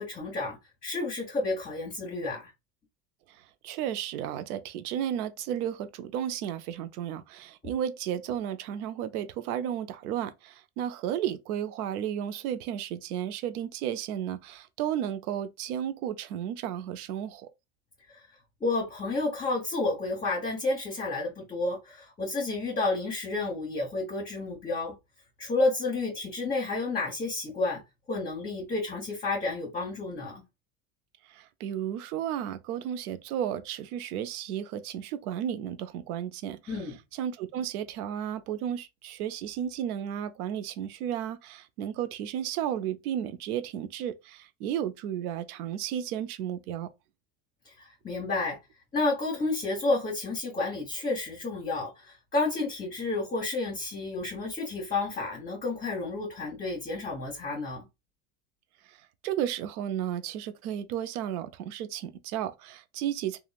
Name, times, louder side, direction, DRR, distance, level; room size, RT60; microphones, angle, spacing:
voice 1, 0.0-2.5 18.1-18.3 18.6-24.9 25.4-27.8 28.1-30.4 36.7-36.9 47.6-48.6 48.9-57.8, left 3 dB, 20° left, 1.1 m, -31 dB
voice 2, 3.3-17.5 31.3-36.9 37.1-46.9 58.8-63.4, right 10 dB, 80° right, 0.6 m, -33 dB
3.0 x 2.3 x 2.3 m
hypercardioid pair, 90°, 44 cm